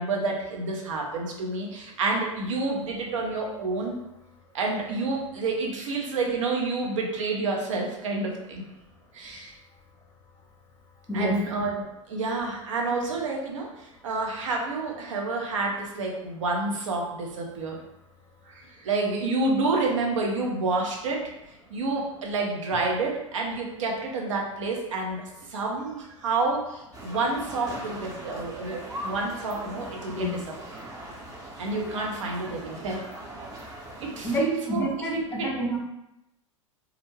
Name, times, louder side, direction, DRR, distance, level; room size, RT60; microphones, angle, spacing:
voice 1, 0.0-4.0 4.5-8.6 9.1-9.5 11.1-17.8 18.5-21.3 21.7-25.2 25.5-30.4 31.6-33.0 34.0-35.5, right 3 dB, 70° right, 0 dB, 0.6 m, -29 dB
voice 2, 11.1-11.4 30.2-30.4 34.2-35.8, equal, 15° left, -1 dB, 0.5 m, -29 dB
sound 1, 26.9-34.4, right 1 dB, 20° right, 0.7 m, -40 dB
2.4 x 2.0 x 3.1 m, 0.88 s
figure-of-eight pair, 85°, 17 cm